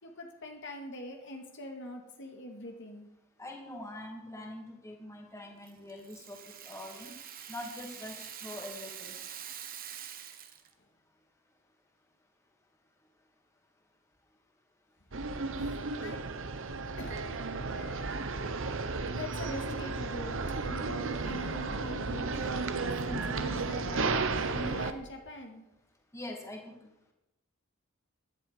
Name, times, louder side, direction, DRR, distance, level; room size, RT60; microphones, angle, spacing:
voice 1, 0.0-3.1 15.6-16.2 17.0-17.3 19.1-24.1 24.5-25.7, equal, 60° left, 2 dB, 2.2 m, -43 dB
voice 2, 3.4-7.2 7.5-9.1 17.7-18.4 23.9-24.7 26.1-26.8, left 1 dB, 15° left, 1 dB, 2.6 m, -44 dB
Rattle (instrument), 5.7-10.7, right 9 dB, 45° right, 1.2 m, -45 dB
sound 1, 15.1-24.9, right 3 dB, 65° right, 1.1 m, -33 dB
15.5 x 11.0 x 5.1 m, 0.91 s
head